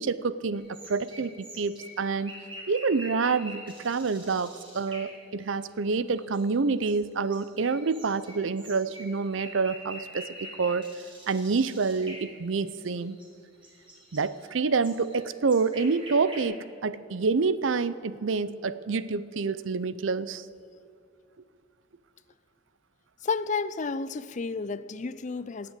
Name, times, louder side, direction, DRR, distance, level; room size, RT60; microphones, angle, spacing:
voice 1, 0.0-2.3 2.7-10.3 10.6-10.9 11.3-13.2 14.1-20.4, right 4 dB, 80° right, 16 dB, 0.6 m, -27 dB
sound 1, 0.5-5.7 6.1-13.3 13.5-16.4, equal, 25° right, 3.7 m, -46 dB
voice 2, 23.2-25.7, left 4 dB, 40° left, 16 dB, 0.5 m, -31 dB
18.5 x 7.7 x 8.2 m, 2.4 s
head